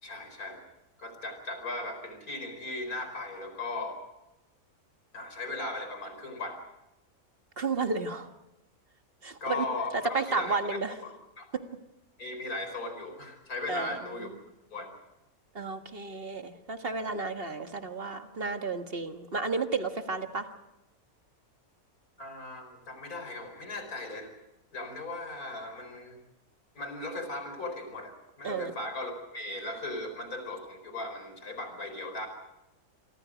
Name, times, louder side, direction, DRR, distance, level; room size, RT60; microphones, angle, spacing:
voice 1, 0.0-0.6 1.0-4.0 5.1-6.6 9.4-11.1 11.4-11.5 12.2-14.3 14.7-14.9 22.2-24.3 24.7-26.2 26.7-32.3, left 2 dB, 75° left, 7 dB, 5.0 m, -37 dB
voice 2, 7.6-8.3 9.2-9.7 10.1-11.0 13.7-14.2 15.6-20.5 28.4-28.7, right 4 dB, 40° right, 6 dB, 1.7 m, -32 dB
26.5 x 24.5 x 5.1 m, 0.93 s
omnidirectional pair, 1.5 m